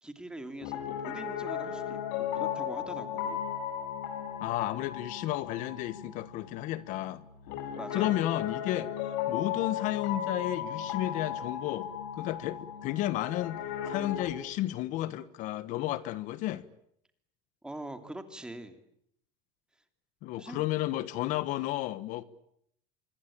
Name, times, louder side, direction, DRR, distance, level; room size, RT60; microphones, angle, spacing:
voice 1, 0.0-3.4 7.7-8.2 17.6-18.8 20.3-20.7, right 1 dB, 5° right, 2.9 m, -43 dB
Piano, 0.6-14.3, left 9 dB, 80° left, 5.2 m, -36 dB
voice 2, 4.4-7.2 7.9-16.7 20.2-22.2, left 15 dB, 60° left, 1.3 m, -32 dB
25.5 x 25.0 x 8.8 m
cardioid pair, 145°, 15 cm